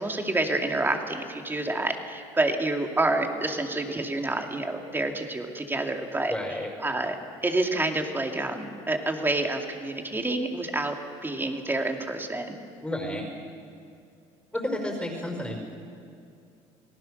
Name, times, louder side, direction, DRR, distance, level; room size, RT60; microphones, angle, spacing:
voice 1, 0.0-6.3 6.8-7.2 7.4-12.6, right 2 dB, 15° right, 4 dB, 2.5 m, -28 dB
voice 2, 6.3-6.7 12.8-13.2 14.5-15.6, left 1 dB, 5° left, 2 dB, 5.1 m, -31 dB
27.5 x 18.0 x 6.6 m, 2.4 s
supercardioid pair, 90°, 14 cm